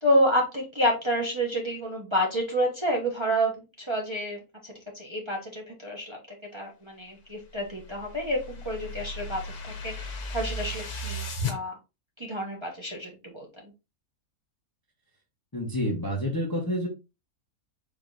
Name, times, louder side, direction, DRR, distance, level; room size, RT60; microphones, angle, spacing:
voice 1, 0.0-3.5 3.8-6.2 6.5-11.7 12.2-13.7, equal, 20° right, -2 dB, 1.1 m, -29 dB
sound 1, 7.5-11.6, left 1 dB, 85° left, 1.5 m, -35 dB
voice 2, 15.5-16.9, equal, 15° left, -1 dB, 1.0 m, -28 dB
4.7 x 2.9 x 3.7 m, 0.27 s
omnidirectional pair, 1.6 m